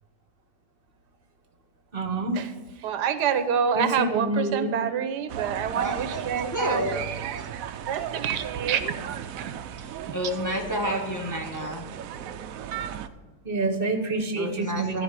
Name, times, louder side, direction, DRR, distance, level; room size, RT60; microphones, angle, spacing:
voice 1, 1.9-2.4 3.7-4.7 13.4-15.0, right 2 dB, 40° right, 1.2 m, -27 dB
voice 2, 2.8-7.5 7.9-10.2, right 7 dB, 85° right, 1.4 m, -28 dB
sound 1, 5.3-13.1, right 9 dB, 70° right, 0.9 m, -36 dB
voice 3, 5.7-6.2 6.5-7.0 7.4-7.5 10.1-11.9 14.3-15.0, equal, 10° left, 1.2 m, -29 dB
13.5 x 5.0 x 8.2 m
omnidirectional pair, 1.7 m